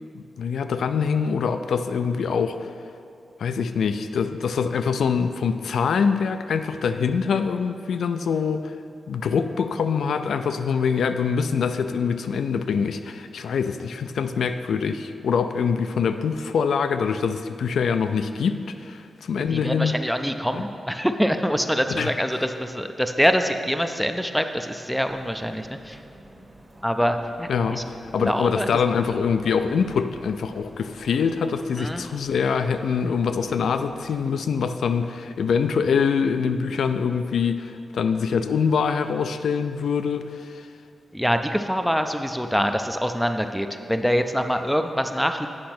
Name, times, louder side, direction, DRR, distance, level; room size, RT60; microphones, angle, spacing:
voice 1, 0.1-2.7 3.4-8.8 9.1-19.9 20.5-20.6 22.0-22.1 27.5-27.8 28.1-40.7, left 6 dB, 85° left, 9 dB, 0.4 m, -24 dB
voice 2, 19.4-26.0 26.8-27.8 28.2-28.7 31.8-32.1 41.1-45.5, equal, ahead, 7 dB, 0.4 m, -25 dB
sound 1, 25.0-34.2, right 1 dB, 20° right, 1.0 m, -48 dB
8.7 x 5.1 x 6.0 m, 2.5 s
wide cardioid pair, 155°, 0 cm